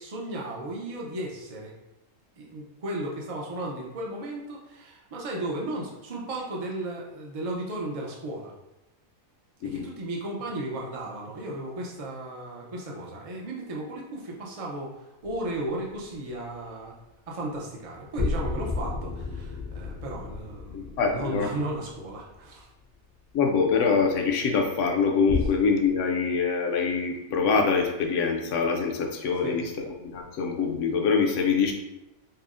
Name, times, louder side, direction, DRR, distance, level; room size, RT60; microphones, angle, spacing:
voice 1, 0.0-1.7 2.4-8.5 9.6-15.0 15.2-16.9 17.3-22.7 29.4-29.6, right 1 dB, 60° right, -2 dB, 0.3 m, -35 dB
sound 1, 15.2-16.2 18.2-22.6 25.3-25.5, left 3 dB, 90° left, 1.1 m, -32 dB
voice 2, 20.7-21.5 23.3-29.6 30.0-31.7, left 5 dB, 70° left, 2 dB, 0.9 m, -24 dB
5.4 x 2.0 x 2.5 m, 0.95 s
omnidirectional pair, 1.5 m